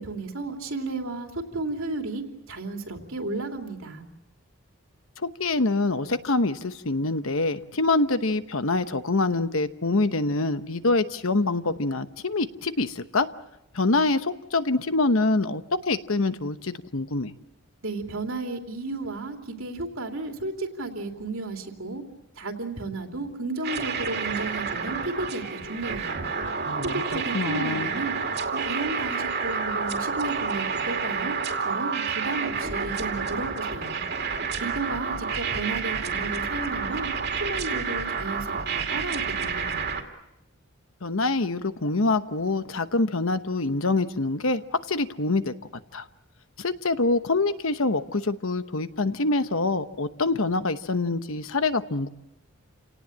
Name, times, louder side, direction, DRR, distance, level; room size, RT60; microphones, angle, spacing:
voice 1, 0.0-4.1 17.8-22.0 22.4-26.3 26.8-28.1 28.5-34.1 34.6-37.1 37.4-39.9, right 2 dB, 70° right, 3 dB, 3.0 m, -33 dB
voice 2, 5.2-13.3 13.7-17.3 26.6-27.9 41.0-45.5 45.9-46.0 46.6-52.1, left 3 dB, 70° left, 11 dB, 1.0 m, -25 dB
sound 1, 23.6-40.0, right 5 dB, 50° right, 2.5 m, -29 dB
29.0 x 18.5 x 8.6 m, 0.91 s
head